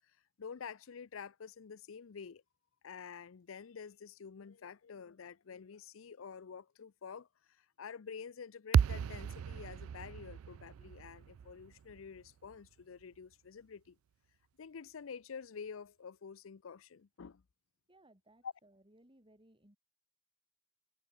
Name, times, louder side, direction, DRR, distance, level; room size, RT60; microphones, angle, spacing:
voice 1, 0.4-2.4 2.8-14.0 14.6-17.4 18.4-18.5, left 6 dB, 70° left, 0.5 m, -48 dB
sound 1, 8.7-13.0, right 7 dB, 85° right, 0.3 m, -34 dB
voice 2, 17.9-19.8, right 1 dB, 25° right, 5.0 m, -64 dB
head